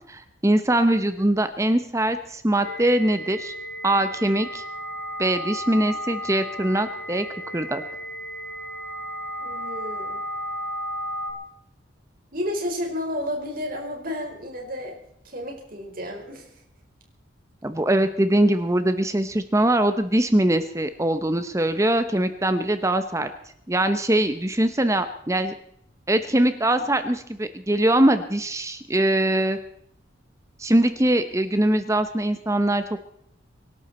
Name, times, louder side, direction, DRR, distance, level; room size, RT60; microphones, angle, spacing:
voice 1, 0.1-3.5 3.8-4.6 5.2-7.3 7.5-7.8 17.6-23.3 23.7-25.5 26.1-29.6 30.6-33.0, right 1 dB, 15° right, 10 dB, 0.8 m, -22 dB
sound 1, 2.6-11.3, equal, 70° left, 3.9 m, -34 dB
voice 2, 9.4-10.2 12.3-14.9 15.2-16.5, left 1 dB, 45° right, 1 dB, 4.7 m, -31 dB
25.0 x 12.0 x 4.3 m, 0.71 s
head